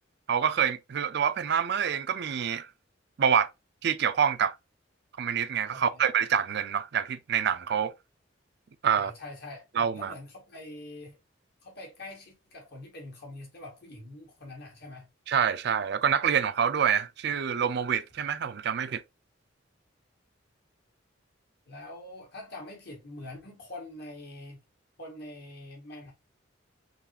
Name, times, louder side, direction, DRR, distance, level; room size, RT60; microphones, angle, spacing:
voice 1, 0.3-2.7 3.2-3.5 3.8-4.5 5.2-7.9 8.8-9.1 9.8-10.1 15.3-19.0, right 7 dB, 60° right, 0.4 m, -26 dB
voice 2, 5.7-6.0 8.9-9.6 9.9-11.2 11.6-15.1 21.7-24.6 25.0-26.1, left 2 dB, 55° left, 1.7 m, -44 dB
4.0 x 3.2 x 2.7 m
head